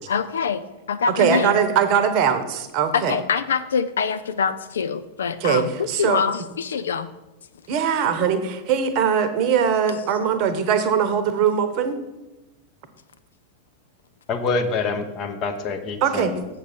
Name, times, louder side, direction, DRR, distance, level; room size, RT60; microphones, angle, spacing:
voice 1, 0.1-1.6 2.9-7.1, left 6 dB, 65° left, 12 dB, 0.4 m, -24 dB
voice 2, 1.2-3.1 5.4-6.2 7.7-12.0 16.0-16.3, right 7 dB, 40° right, 9 dB, 0.9 m, -21 dB
voice 3, 14.3-16.3, left 4 dB, 35° left, 6 dB, 0.9 m, -26 dB
7.4 x 6.5 x 5.1 m, 1.0 s
figure-of-eight pair, 90°, 0 cm